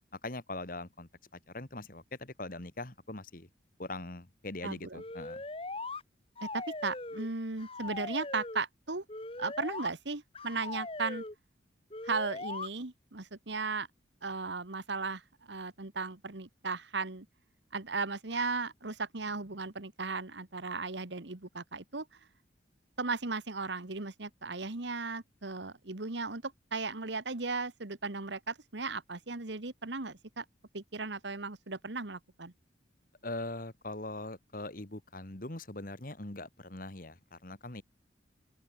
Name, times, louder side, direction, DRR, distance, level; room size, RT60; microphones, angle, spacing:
voice 1, 0.2-1.1 1.5-3.5 3.8-5.4 33.2-37.8, left 2 dB, 45° left, 2.1 m, -41 dB
voice 2, 4.6-5.0 6.4-9.0 9.4-11.2 12.0-13.9 14.2-15.2 15.5-17.3 17.7-22.1 23.0-30.5 30.7-32.5, right 4 dB, 70° right, 1.6 m, -36 dB
sound 1, 4.9-6.0 6.4-7.3 7.6-8.6 9.1-9.9 10.3-11.3 11.9-12.7, left 2 dB, 30° left, 2.1 m, -40 dB
open air
head